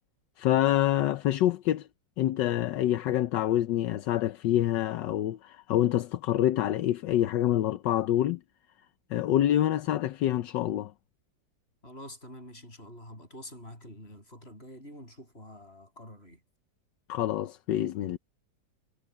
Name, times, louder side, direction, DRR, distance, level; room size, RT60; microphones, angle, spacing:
voice 1, 0.4-1.9 2.2-8.4 9.1-10.9 17.1-18.2, left 12 dB, 80° left, 1.4 m, -26 dB
voice 2, 11.8-16.4, left 1 dB, 30° left, 7.9 m, -47 dB
omnidirectional pair, 2.0 m